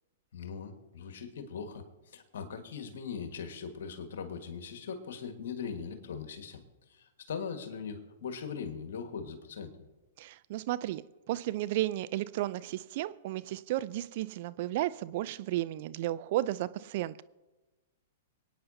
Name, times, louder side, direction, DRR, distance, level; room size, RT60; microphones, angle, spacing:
voice 1, 0.3-1.8 2.1-6.6 6.9-9.8, left 6 dB, 65° left, 6 dB, 1.7 m, -40 dB
voice 2, 10.2-11.0 11.3-17.2, right 15 dB, 55° right, 16 dB, 0.4 m, -33 dB
26.0 x 9.4 x 2.8 m, 1.1 s
hypercardioid pair, 110°, 0 cm